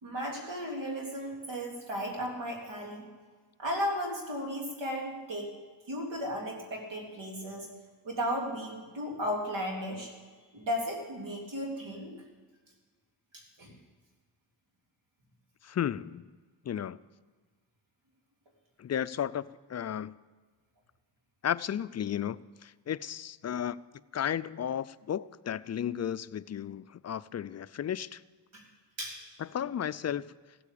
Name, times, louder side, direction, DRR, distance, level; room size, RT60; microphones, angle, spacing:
voice 1, 0.0-3.0 3.6-5.5 5.9-7.7 8.0-10.1 10.5-12.1 13.3-13.7 28.5-28.6 29.0-29.2, equal, 75° right, 0 dB, 3.6 m, -35 dB
voice 2, 15.6-16.3 16.7-17.0 18.8-20.2 21.4-23.8 24.1-28.2 29.4-30.3, left 9 dB, 40° left, 16 dB, 0.4 m, -34 dB
15.5 x 8.4 x 8.5 m, 1.5 s
cardioid pair, 70°, 45 cm